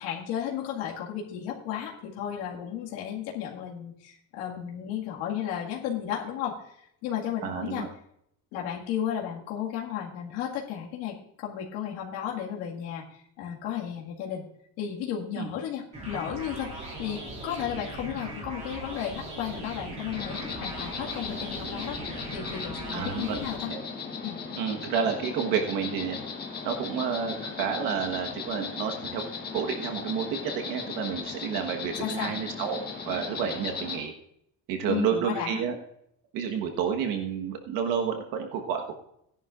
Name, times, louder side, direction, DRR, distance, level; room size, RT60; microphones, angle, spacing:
voice 1, 0.0-6.6 7.0-7.8 8.5-14.4 14.8-23.7 24.2-24.4 32.0-32.3 34.9-35.6, left 9 dB, 85° left, -2 dB, 2.0 m, -34 dB
voice 2, 7.4-7.9 15.4-15.5 22.9-23.4 23.7-23.8 24.6-26.2 26.6-29.2 29.5-34.1 34.7-35.7 36.3-38.9, right 7 dB, 65° right, 3 dB, 1.4 m, -30 dB
sound 1, 15.9-23.5, right 2 dB, 20° right, 3.0 m, -39 dB
Insect, 20.1-34.0, left 5 dB, 25° left, 1.4 m, -37 dB
17.0 x 11.0 x 2.5 m, 0.74 s
cardioid pair, 175°, 37 cm